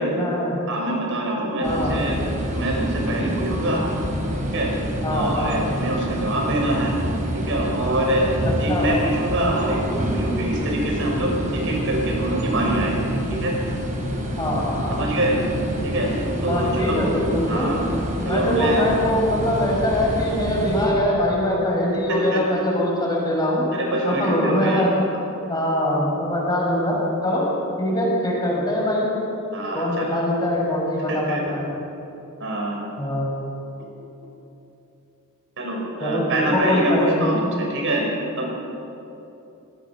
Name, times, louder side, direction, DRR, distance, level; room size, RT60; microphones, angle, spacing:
voice 1, 0.0-0.6 1.6-2.0 5.0-5.6 8.7-8.9 14.4-15.0 16.5-17.7 18.3-23.6 24.0-25.0 25.5-27.5 27.8-29.1 29.7-31.7 33.0-33.3 36.0-37.3, left 1 dB, 20° left, -3 dB, 5.6 m, -23 dB
voice 2, 0.7-2.2 2.5-3.8 4.5-4.7 5.1-6.9 7.3-8.3 8.6-13.0 13.3-13.5 14.9-15.4 15.8-16.1 16.4-17.0 17.5-17.8 18.3-18.8 22.1-22.4 23.7-24.9 29.5-30.2 31.1-31.4 32.4-32.8 35.6-38.0 38.4-38.5, right 1 dB, 60° right, -1 dB, 5.5 m, -25 dB
sound 1, 1.6-20.9, equal, 35° right, 4.7 m, -27 dB
25.5 x 19.5 x 5.9 m, 2.9 s
head